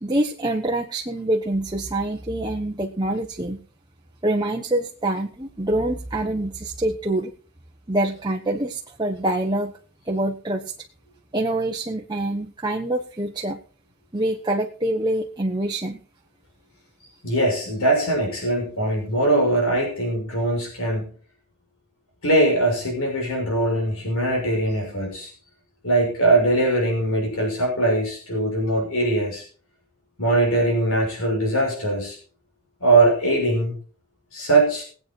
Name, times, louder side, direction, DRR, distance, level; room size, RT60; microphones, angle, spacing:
voice 1, 0.0-3.6 4.2-7.3 7.9-9.7 10.1-10.7 11.3-13.6 14.1-16.0, right 1 dB, 20° right, 1 dB, 1.2 m, -25 dB
voice 2, 17.2-21.1 22.2-25.3 25.8-29.4 30.2-32.2 32.8-33.7 34.3-34.8, right 2 dB, 70° left, -1 dB, 6.5 m, -21 dB
20.5 x 8.9 x 4.6 m, 0.41 s
head